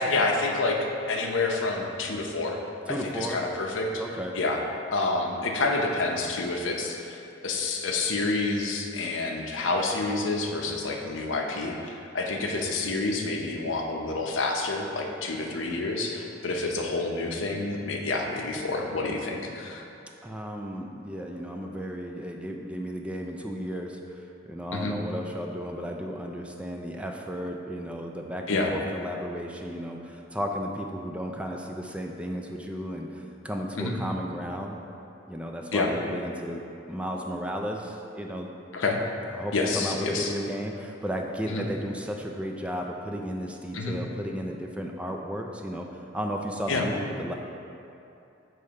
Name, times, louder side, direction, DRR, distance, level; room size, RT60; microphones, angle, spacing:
voice 1, 0.0-2.6 2.9-4.0 4.3-4.6 4.9-19.8 24.7-25.0 28.5-28.7 33.8-34.0 35.7-35.9 38.7-39.0 39.5-40.3 41.5-41.7 43.7-44.0 46.7-46.9, left 3 dB, 85° left, 1 dB, 0.7 m, -28 dB
voice 2, 2.9-3.4 4.0-4.3 20.2-34.8 35.3-36.6 36.9-38.5 39.3-45.9 46.1-47.3, equal, 5° right, 1 dB, 0.3 m, -34 dB
6.8 x 3.2 x 4.7 m, 2.7 s
head